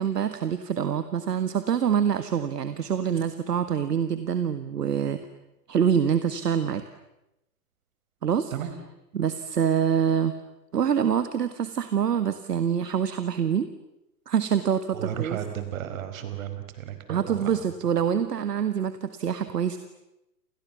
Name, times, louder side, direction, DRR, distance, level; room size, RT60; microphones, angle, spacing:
voice 1, 0.0-5.3 5.7-6.8 8.2-8.5 9.1-10.4 10.7-13.7 14.3-15.4 17.1-19.8, right 8 dB, 70° right, 11 dB, 1.8 m, -25 dB
voice 2, 14.9-17.6, right 10 dB, 55° right, 9 dB, 5.0 m, -34 dB
30.0 x 28.0 x 7.2 m, 0.89 s
figure-of-eight pair, 110°, 50 cm